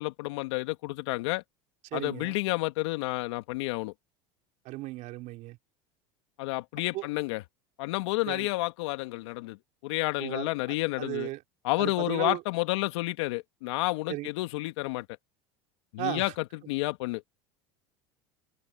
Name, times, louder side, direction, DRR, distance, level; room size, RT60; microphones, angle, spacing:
voice 1, 0.0-1.4 1.9-3.9 6.4-7.4 7.8-9.6 9.8-11.3 11.6-15.1 15.9-17.2, left 21 dB, 75° left, 2.3 m, -30 dB
voice 2, 1.9-2.3 4.7-5.6 6.8-7.1 8.3-8.5 10.2-11.4 11.8-12.4 14.1-14.3 16.0-16.3, right 19 dB, 60° right, 3.6 m, -36 dB
hypercardioid pair, 90°, 15 cm